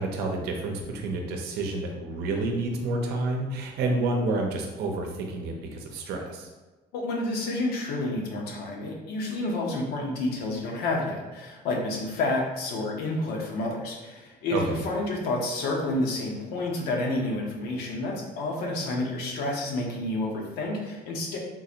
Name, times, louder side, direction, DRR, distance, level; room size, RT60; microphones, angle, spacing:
voice 1, 0.0-6.5 14.5-14.8, right 2 dB, 75° right, 2 dB, 0.6 m, -29 dB
voice 2, 6.9-21.4, left 2 dB, 75° left, 0 dB, 0.8 m, -29 dB
3.7 x 2.5 x 2.8 m, 1.2 s
cardioid pair, 150°, 16 cm